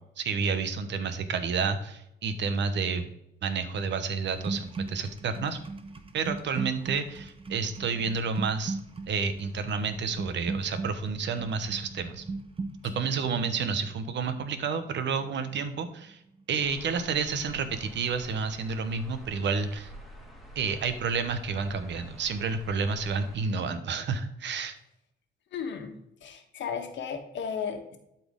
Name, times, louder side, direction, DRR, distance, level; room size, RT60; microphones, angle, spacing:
voice 1, 0.2-3.1 3.4-5.6 6.1-8.8 9.1-12.2 12.9-16.2 16.5-19.9 20.5-24.7, right 5 dB, 65° right, 10 dB, 1.0 m, -30 dB
sound 1, 4.3-16.1 16.4-16.8, right 3 dB, 30° right, 0.9 m, -39 dB
sound 2, 16.6-23.4, right 1 dB, ahead, 2.0 m, -48 dB
voice 2, 25.5-28.0, left 6 dB, 65° left, 5 dB, 1.3 m, -35 dB
12.0 x 4.2 x 3.7 m, 0.82 s
cardioid pair, 90°, 20 cm